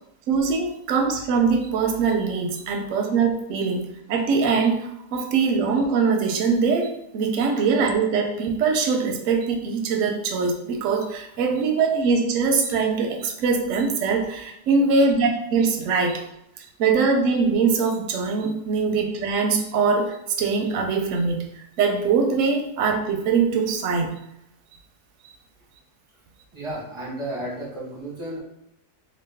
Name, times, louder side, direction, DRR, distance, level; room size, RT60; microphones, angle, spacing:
voice 1, 0.3-16.2 16.6-24.1, right 5 dB, 70° right, 3 dB, 0.8 m, -22 dB
voice 2, 26.5-28.4, right 1 dB, 30° right, -5 dB, 0.5 m, -33 dB
3.0 x 2.3 x 3.4 m, 0.79 s
omnidirectional pair, 1.7 m